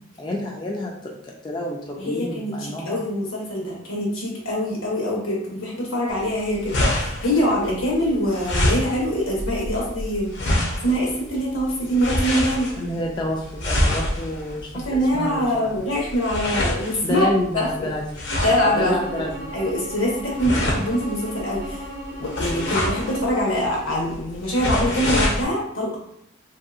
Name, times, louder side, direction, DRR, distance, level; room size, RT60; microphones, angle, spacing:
voice 1, 0.2-0.9 1.2-3.0 12.8-15.7 17.0-18.2 18.8-19.5, left 1 dB, 20° left, -1 dB, 0.3 m, -29 dB
voice 2, 2.0-10.3 10.8-12.7 14.7-17.3 17.5-17.7 18.4-19.1 19.5-21.8 22.2-25.9, equal, 80° left, -3 dB, 1.0 m, -24 dB
sound 1, 6.1-25.4, left 1 dB, 60° left, 0.7 m, -27 dB
Bowed string instrument, 18.3-23.4, right 1 dB, 55° right, 0.5 m, -36 dB
3.0 x 2.7 x 2.4 m, 0.75 s
head